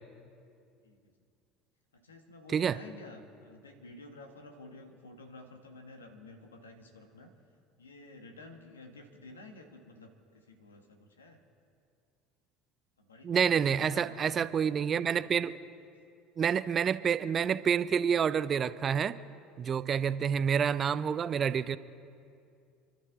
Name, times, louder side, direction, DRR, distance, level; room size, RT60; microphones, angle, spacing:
voice 1, 2.0-7.3 7.8-11.4 13.0-14.4 15.0-15.3, left 2 dB, 90° left, 4 dB, 1.6 m, -51 dB
voice 2, 13.2-15.6 16.4-19.2 19.6-21.8, right 7 dB, 35° right, 15 dB, 0.6 m, -28 dB
29.0 x 11.5 x 3.8 m, 2.4 s
hypercardioid pair, 70°, 0 cm